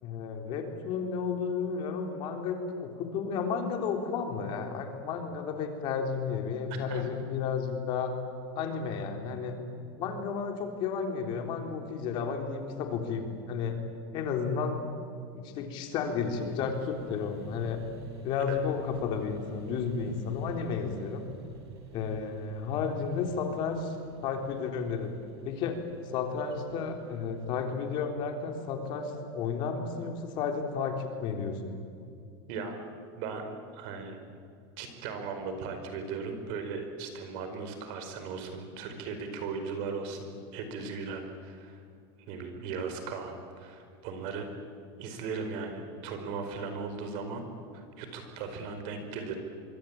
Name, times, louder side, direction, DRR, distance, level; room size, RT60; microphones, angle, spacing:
voice 1, 0.0-8.1 8.6-9.6 10.0-13.8 14.1-14.9 15.3-17.8 18.2-21.3 21.9-25.1 25.4-25.8 26.1-31.7, left 5 dB, 35° left, 4 dB, 3.6 m, -32 dB
voice 2, 6.7-7.1 18.5-18.6 32.5-32.8 33.1-33.5 33.7-34.2 34.8-41.8 42.3-44.5 45.0-47.5 47.7-49.3, right 5 dB, 45° right, 6 dB, 4.8 m, -37 dB
sound 1, 16.0-27.9, right 5 dB, 90° right, 6.5 m, -51 dB
25.0 x 24.0 x 8.9 m, 2.4 s
supercardioid pair, 170°, 13 cm